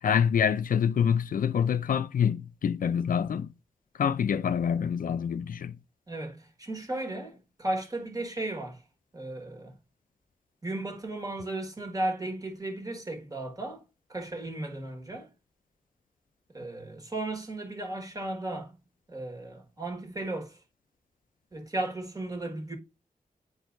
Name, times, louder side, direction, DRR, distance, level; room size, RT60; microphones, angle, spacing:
voice 1, 0.0-3.5 4.0-5.7, left 7 dB, 75° left, 0.4 m, -26 dB
voice 2, 6.1-8.8 9.1-9.7 10.6-13.8 14.1-15.3 16.5-18.7 19.1-20.6 21.5-22.8, right 2 dB, 25° right, 1.5 m, -35 dB
9.2 x 4.4 x 2.5 m
wide cardioid pair, 110°, 14 cm